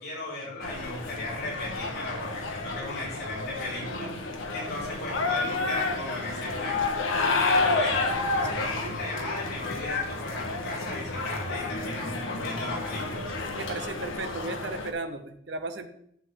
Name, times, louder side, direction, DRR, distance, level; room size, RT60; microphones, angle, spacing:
voice 1, 0.0-4.2 4.5-6.8 7.2-8.0 8.3-13.3, left 2 dB, 50° left, -6 dB, 4.5 m, -36 dB
sound 1, 0.6-14.9, left 3 dB, 85° left, 1.2 m, -30 dB
sound 2, 7.5-13.8, equal, 70° left, 2.3 m, -42 dB
voice 2, 8.5-9.0 13.5-15.9, right 2 dB, 60° right, 8 dB, 0.8 m, -36 dB
11.0 x 7.5 x 3.7 m, 0.71 s
head